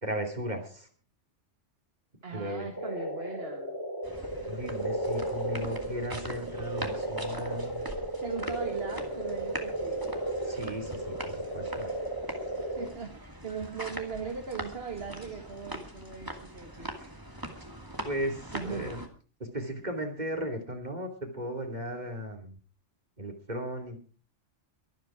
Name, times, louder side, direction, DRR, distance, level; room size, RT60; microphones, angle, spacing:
voice 1, 0.0-0.9 2.3-2.7 4.4-7.9 10.4-11.9 16.8-17.1 18.0-19.0 19.4-22.6 23.2-24.0, equal, 40° right, 3 dB, 3.0 m, -36 dB
voice 2, 2.2-3.7 8.2-10.0 12.6-16.9 18.5-18.9, right 5 dB, 60° right, 4 dB, 2.0 m, -39 dB
sound 1, 2.8-12.9, right 1 dB, 20° left, 4.6 m, -34 dB
sound 2, 4.0-19.1, right 1 dB, 20° right, 2.4 m, -42 dB
23.0 x 9.3 x 4.9 m, 0.38 s
omnidirectional pair, 1.2 m